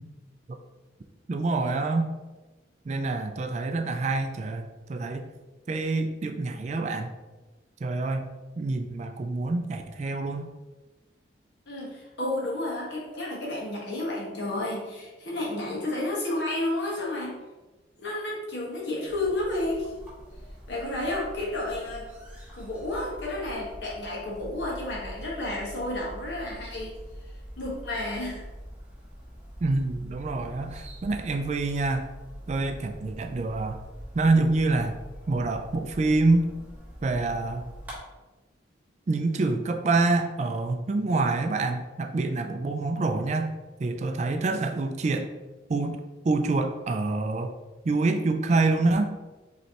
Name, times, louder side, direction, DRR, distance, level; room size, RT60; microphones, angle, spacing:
voice 1, 1.3-2.1 2.9-5.3 5.7-7.1 7.8-10.5 29.6-32.1 32.5-33.8 34.1-35.0 35.3-36.5 37.0-37.7 39.1-43.5 43.8-45.3 45.7-47.5 47.8-49.1, right 3 dB, 35° right, 6 dB, 0.3 m, -26 dB
voice 2, 11.7-17.4 18.0-19.9 20.7-22.1 22.5-26.9 27.2-28.5, left 1 dB, 65° left, -4 dB, 1.4 m, -31 dB
sound 1, 19.1-38.0, equal, 10° right, 1.0 m, -44 dB
5.3 x 3.1 x 2.9 m, 1.2 s
head